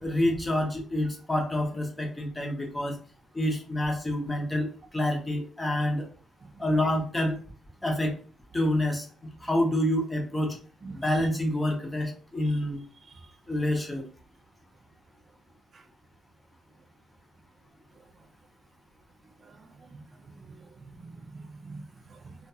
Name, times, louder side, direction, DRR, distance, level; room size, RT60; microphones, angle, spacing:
voice 1, 0.0-3.0 3.3-4.7 4.9-6.1 6.6-7.4 7.8-8.1 8.5-9.1 9.4-10.5 11.0-12.8 13.5-14.0, left 1 dB, 15° left, 2 dB, 0.8 m, -27 dB
voice 2, 19.4-20.0 20.4-22.4, right 3 dB, 40° right, 6 dB, 0.5 m, -46 dB
2.5 x 2.3 x 2.7 m, 0.40 s
cardioid pair, 90°, 0 cm